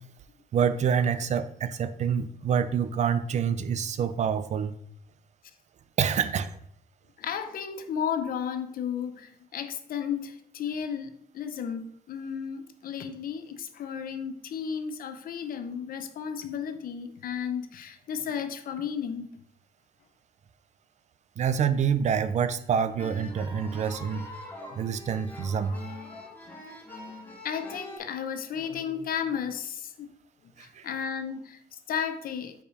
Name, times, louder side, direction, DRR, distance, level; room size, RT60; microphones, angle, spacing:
voice 1, 0.5-4.7 6.0-6.5 21.4-24.3 24.7-25.8 30.6-30.9, right 7 dB, 45° right, 12 dB, 0.4 m, -27 dB
voice 2, 7.2-19.3 24.7-24.9 27.4-30.1 30.4-32.5, left 7 dB, 60° left, 9 dB, 0.7 m, -34 dB
sound 1, 23.0-28.0, left 2 dB, 10° left, 2.2 m, -43 dB
5.3 x 4.8 x 4.9 m, 0.67 s
cardioid pair, 140°, 17 cm